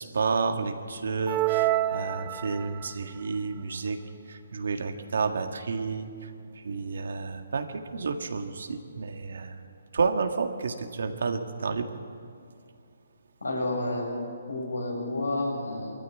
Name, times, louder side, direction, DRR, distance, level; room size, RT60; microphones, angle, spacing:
voice 1, 0.0-4.0 4.3-6.3 6.6-9.5 9.9-11.9, right 4 dB, 65° right, 6 dB, 1.8 m, -30 dB
sound 1, 1.3-2.9, right 15 dB, 20° right, 0.4 m, -27 dB
voice 2, 13.4-14.1 14.5-15.9, left 2 dB, 90° left, -1 dB, 7.3 m, -30 dB
22.5 x 14.5 x 8.4 m, 2.4 s
figure-of-eight pair, 145°, 0 cm